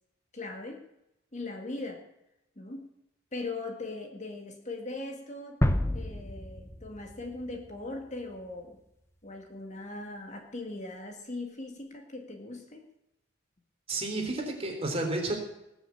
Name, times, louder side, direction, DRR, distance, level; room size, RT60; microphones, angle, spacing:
voice 1, 0.3-0.8 1.3-2.0 2.6-2.9 3.3-5.6 5.9-8.8 9.2-12.8, left 2 dB, 35° left, 3 dB, 2.0 m, -39 dB
sound 1, 5.6-8.4, left 1 dB, 15° left, 0.8 m, -31 dB
voice 2, 13.9-15.3, right 2 dB, 30° right, 1 dB, 3.6 m, -31 dB
19.5 x 7.2 x 8.5 m, 0.89 s
head